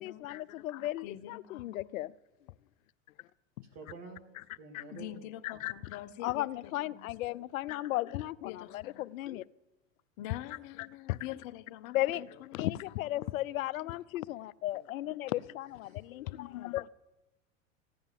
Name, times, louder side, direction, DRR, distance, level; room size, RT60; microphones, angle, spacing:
voice 1, 0.0-2.1 4.7-4.8 5.4-5.7 6.2-9.4 11.1-11.2 11.9-12.2 12.5-16.9, left 15 dB, 80° left, 0.6 m, -35 dB
voice 2, 1.0-2.0 4.9-7.2 8.4-9.1 10.2-13.4 16.2-16.3, left 13 dB, 55° left, 1.0 m, -46 dB
voice 3, 3.7-4.2 4.6-5.2 15.8-16.1, right 4 dB, 40° right, 2.2 m, -48 dB
15.5 x 10.0 x 7.3 m
hypercardioid pair, 110°, 40 cm